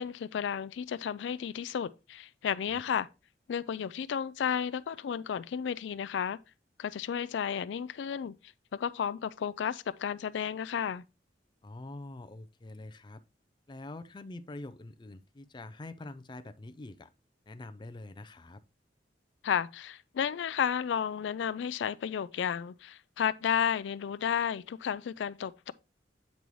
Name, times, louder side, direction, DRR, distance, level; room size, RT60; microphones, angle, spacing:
voice 1, 0.0-3.1 3.5-6.4 6.8-8.3 8.7-11.0 19.4-25.7, left 8 dB, 85° left, 0.4 m, -32 dB
voice 2, 11.6-13.2 13.7-17.1 17.5-18.6, left 2 dB, 25° left, 0.5 m, -45 dB
8.3 x 5.3 x 3.1 m
head